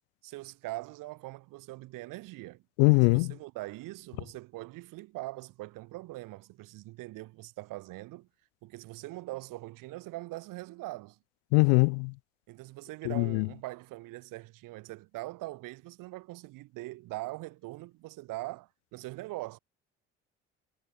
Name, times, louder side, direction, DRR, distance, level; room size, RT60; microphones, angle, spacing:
voice 1, 0.2-2.6 3.1-8.3 8.6-11.2 12.5-19.6, right 19 dB, 65° right, 4.3 m, -42 dB
voice 2, 2.8-3.3 11.5-12.1 13.1-13.5, left 40 dB or more, 65° left, 0.8 m, -22 dB
figure-of-eight pair, 50°, 35 cm